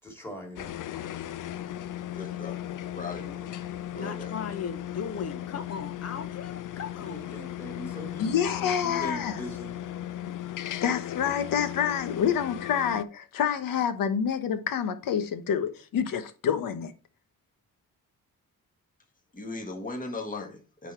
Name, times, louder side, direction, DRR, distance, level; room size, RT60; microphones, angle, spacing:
voice 1, 0.0-0.7 7.0-9.8, left 1 dB, 5° left, 2.5 m, -41 dB
sound 1, 0.6-13.0, left 12 dB, 70° left, 0.6 m, -37 dB
voice 2, 2.1-3.5 3.9-4.3 19.3-20.9, left 3 dB, 25° left, 1.7 m, -38 dB
voice 3, 3.9-7.3, left 6 dB, 50° left, 1.1 m, -37 dB
voice 4, 8.2-9.4 10.8-16.9, left 8 dB, 90° left, 1.1 m, -27 dB
9.6 x 4.1 x 4.5 m
wide cardioid pair, 150°, 32 cm